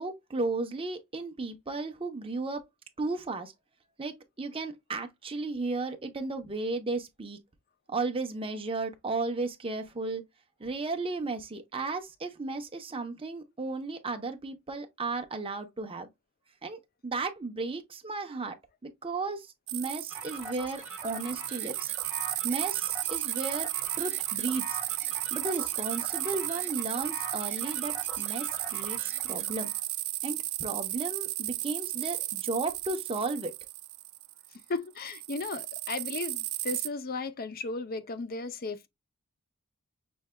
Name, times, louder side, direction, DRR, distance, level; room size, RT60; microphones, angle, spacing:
voice 1, 0.0-2.6 3.0-3.5 4.0-7.4 7.9-10.2 10.6-16.1 16.6-18.6 18.8-21.9 22.4-23.7 24.0-24.8 25.3-29.7 30.2-33.5, right 3 dB, 25° right, 0.8 m, -34 dB
sound 1, 19.7-34.6 35.0-36.9, right 19 dB, 70° right, 0.4 m, -34 dB
sound 2, 20.1-29.8, right 2 dB, 10° right, 1.5 m, -43 dB
voice 2, 34.7-38.9, left 3 dB, 45° left, 0.5 m, -35 dB
6.2 x 3.3 x 2.2 m
head